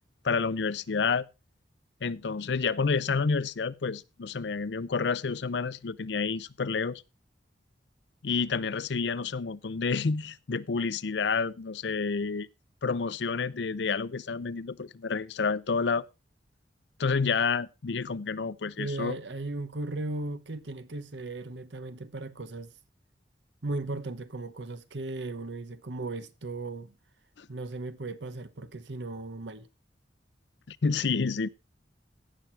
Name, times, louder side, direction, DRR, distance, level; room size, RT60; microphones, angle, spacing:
voice 1, 0.2-1.3 2.0-7.0 8.2-12.5 12.8-16.1 17.0-19.2 27.4-27.5 30.7-31.5, left 5 dB, 70° left, 0.6 m, -29 dB
voice 2, 18.8-22.7 23.6-26.9 27.5-29.7, right 2 dB, 80° right, 1.0 m, -36 dB
16.5 x 6.3 x 4.5 m
head